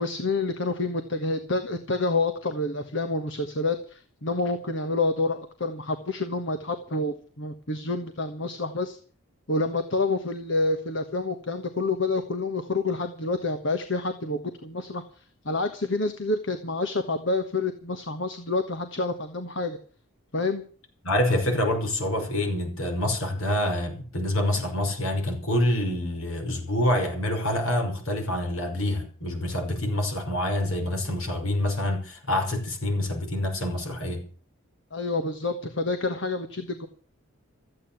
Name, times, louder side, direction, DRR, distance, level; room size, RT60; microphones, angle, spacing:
voice 1, 0.0-9.0 9.5-19.8 20.3-20.6 34.9-36.9, left 2 dB, 55° left, 1.4 m, -28 dB
voice 2, 21.0-34.3, left 1 dB, 75° left, 5.5 m, -26 dB
14.0 x 8.9 x 9.1 m
head